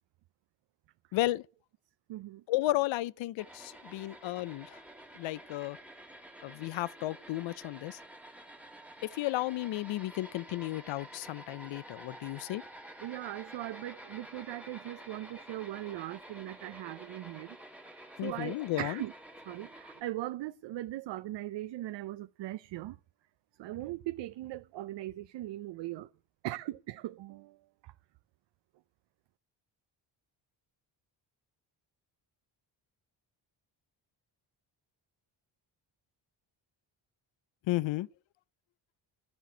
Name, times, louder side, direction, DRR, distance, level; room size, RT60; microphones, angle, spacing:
voice 1, 1.1-1.4 2.5-4.8 5.1-5.8 6.4-8.0 9.0-12.6 18.2-19.0 37.7-38.1, left 16 dB, 90° left, 0.6 m, -33 dB
voice 2, 2.1-2.4 4.0-4.1 12.2-12.3 13.0-17.6 18.0-19.1 19.5-23.0 23.6-26.1 26.4-27.6 27.8-27.9, right 15 dB, 70° right, 0.6 m, -39 dB
sound 1, 3.4-20.0, right 1 dB, 5° right, 1.3 m, -50 dB
13.5 x 6.0 x 9.3 m
wide cardioid pair, 155°, 44 cm